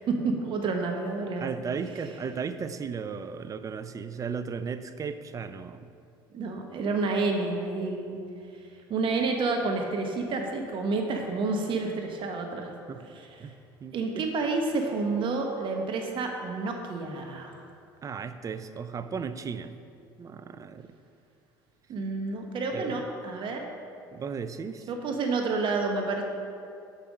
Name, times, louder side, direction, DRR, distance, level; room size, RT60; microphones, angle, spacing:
voice 1, 0.1-1.5 6.3-8.2 8.9-12.7 13.1-13.5 13.9-17.5 21.9-23.7 24.9-26.2, right 3 dB, 45° right, 3 dB, 1.1 m, -29 dB
voice 2, 1.4-5.8 12.9-13.1 13.4-13.5 13.8-14.3 18.0-19.8 20.2-20.9 22.7-23.1 24.1-24.9, right 6 dB, 30° right, 11 dB, 0.5 m, -35 dB
7.1 x 5.6 x 5.2 m, 2.5 s
hypercardioid pair, 70°, 11 cm